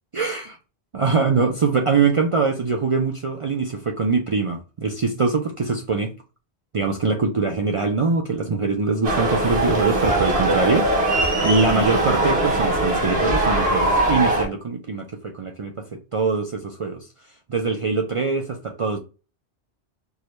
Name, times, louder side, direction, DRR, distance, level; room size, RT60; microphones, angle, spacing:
voice 1, 0.1-0.5 0.9-6.1 6.7-17.1 17.5-19.0, right 4 dB, 55° right, 0.3 m, -23 dB
sound 1, 9.0-14.4, right 2 dB, 75° right, 1.2 m, -21 dB
4.6 x 2.1 x 3.0 m
omnidirectional pair, 1.1 m